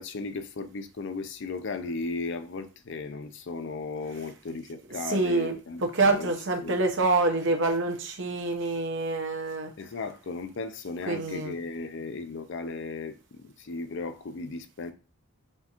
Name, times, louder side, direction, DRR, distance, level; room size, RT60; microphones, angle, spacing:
voice 1, 0.0-6.3 6.6-6.8 9.8-14.9, left 3 dB, 55° left, 0.5 m, -36 dB
voice 2, 5.0-5.6 5.8-9.7 11.1-11.5, right 3 dB, 55° right, 0.8 m, -26 dB
4.3 x 3.5 x 2.9 m
head